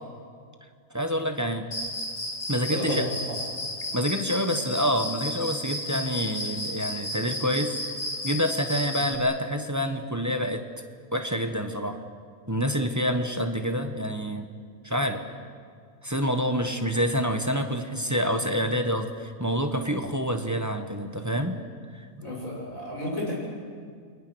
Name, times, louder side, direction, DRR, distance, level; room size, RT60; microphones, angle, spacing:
voice 1, 0.9-1.7 2.5-3.1 3.9-7.8 8.2-10.6 11.1-12.0 12.5-14.5 14.8-15.2 16.0-21.6 21.9-22.0, equal, 10° right, 5 dB, 1.2 m, -27 dB
Cricket, 1.7-9.2, left 1 dB, 45° left, 3.0 m, -33 dB
voice 2, 2.5-3.4 22.2-23.3, left 1 dB, 60° left, -3 dB, 7.3 m, -32 dB
29.0 x 22.0 x 6.4 m, 2.1 s
omnidirectional pair, 1.6 m